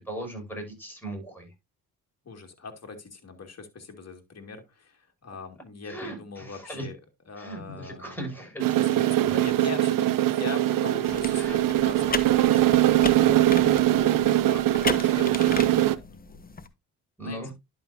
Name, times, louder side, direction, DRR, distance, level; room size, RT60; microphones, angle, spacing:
voice 1, 0.0-1.5 5.8-6.9 7.4-8.8 9.2-9.4 11.4-11.6 13.2-13.4 17.2-17.5, right 1 dB, 5° left, 5.9 m, -38 dB
voice 2, 2.2-7.0 7.3-8.2 8.8-13.5 14.0-16.4 17.2-17.4, left 4 dB, 40° left, 2.4 m, -41 dB
sound 1, 8.6-15.9, right 14 dB, 55° right, 0.6 m, -22 dB
sound 2, 11.1-16.7, left 4 dB, 20° left, 1.0 m, -36 dB
11.0 x 5.8 x 2.7 m
supercardioid pair, 60°, 41 cm